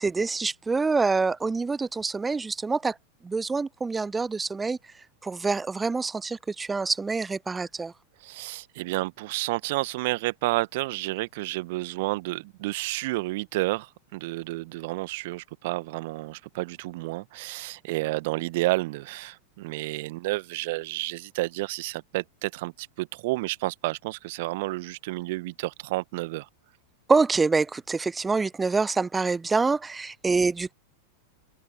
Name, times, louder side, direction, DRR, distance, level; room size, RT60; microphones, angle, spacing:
voice 1, 0.0-3.0 3.2-4.8 5.2-7.9 27.1-30.7, right 4 dB, 10° right, 0.6 m, -26 dB
voice 2, 8.2-26.5, right 21 dB, 50° right, 1.6 m, -30 dB
figure-of-eight pair, 90°, 0 cm